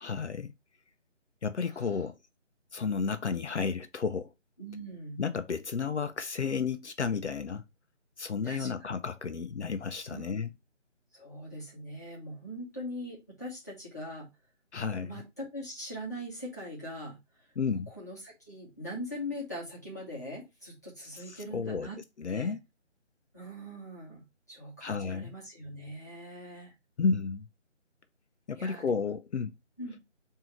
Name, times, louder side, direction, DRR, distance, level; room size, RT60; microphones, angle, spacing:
voice 1, 0.0-0.5 1.4-2.2 2.7-4.3 5.2-7.6 8.2-10.5 14.7-15.2 17.6-17.9 21.2-21.9 22.2-22.6 24.8-25.3 27.0-27.5 28.5-29.6, left 5 dB, 65° left, 0.5 m, -32 dB
voice 2, 4.6-5.2 8.4-8.7 10.1-10.4 11.1-14.3 15.0-17.2 17.7-22.0 22.3-22.5 23.3-26.7 28.5-29.0 29.8-30.0, equal, 15° left, 0.9 m, -41 dB
3.7 x 2.7 x 4.4 m
figure-of-eight pair, 170°, 37 cm